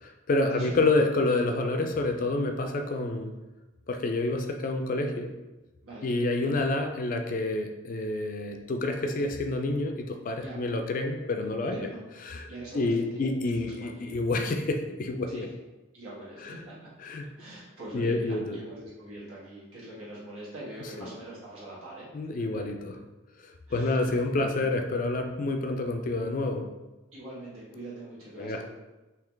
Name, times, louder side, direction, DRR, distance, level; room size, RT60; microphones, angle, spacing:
voice 1, 0.0-3.4 3.9-5.3 6.0-11.8 12.2-12.5 12.7-15.5 16.4-16.5 17.0-17.3 17.9-18.6 21.0-21.1 22.1-23.0 23.4-26.7 28.4-28.7, left 2 dB, 40° left, 4 dB, 0.3 m, -28 dB
voice 2, 11.7-12.0 12.5-13.3 13.5-14.2 15.3-15.5 15.9-16.9 17.4-22.1 22.5-22.6 23.7-24.6 27.1-28.7, right 1 dB, 90° right, -7 dB, 1.3 m, -43 dB
3.7 x 2.9 x 3.3 m, 1.1 s
head